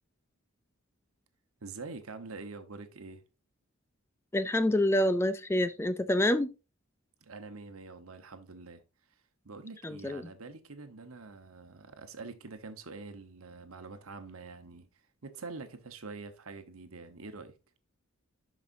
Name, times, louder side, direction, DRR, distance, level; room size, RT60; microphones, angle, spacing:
voice 1, 1.6-3.2 7.2-8.8 9.4-14.9 15.2-17.6, right 3 dB, 85° right, 1.1 m, -45 dB
voice 2, 4.3-6.5 9.8-10.2, left 1 dB, 10° left, 0.3 m, -27 dB
11.0 x 5.1 x 2.7 m
head